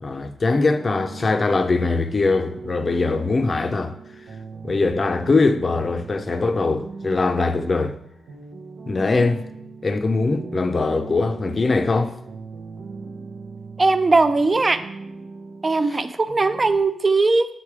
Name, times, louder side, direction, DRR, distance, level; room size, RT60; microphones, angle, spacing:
voice 1, 0.0-3.9 4.6-8.0 8.9-9.4 9.8-12.1 15.9-16.0, left 3 dB, 35° left, 0.5 m, -21 dB
sound 1, 0.5-16.8, right 4 dB, 75° right, 0.8 m, -39 dB
voice 2, 13.8-14.8 15.6-17.5, right 3 dB, 30° right, 0.4 m, -19 dB
7.6 x 3.2 x 4.8 m
cardioid pair, 100°, 0 cm